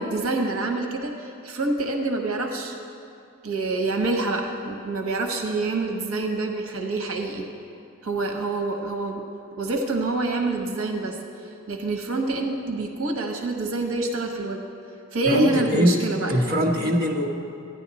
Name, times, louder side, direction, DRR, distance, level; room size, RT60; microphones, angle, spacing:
voice 1, 0.0-2.8 3.4-7.5 8.0-9.2 9.5-11.2 11.7-14.6 15.1-16.4, right 3 dB, 80° right, 3 dB, 1.1 m, -27 dB
voice 2, 15.2-16.0 16.3-17.3, equal, 45° right, -2 dB, 1.0 m, -21 dB
14.0 x 10.0 x 4.1 m, 2.6 s
head